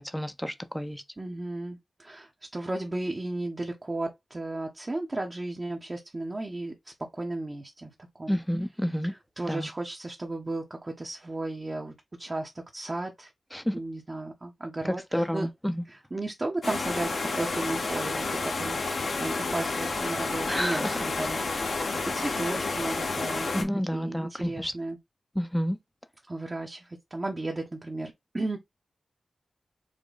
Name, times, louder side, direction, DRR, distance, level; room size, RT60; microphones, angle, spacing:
voice 1, 0.0-1.0 8.3-9.1 9.4-9.7 13.5-13.8 14.8-15.8 20.5-21.0 23.5-24.7 25.3-25.8, equal, 5° left, 0.7 m, -30 dB
voice 2, 1.2-8.4 9.0-13.3 13.7-15.5 15.9-21.4 21.8-23.5 23.9-25.0 26.3-28.6, right 2 dB, 35° right, 1.0 m, -34 dB
sound 1, 16.6-23.6, left 3 dB, 85° left, 1.6 m, -30 dB
5.1 x 2.2 x 3.9 m
wide cardioid pair, 70°, 0 cm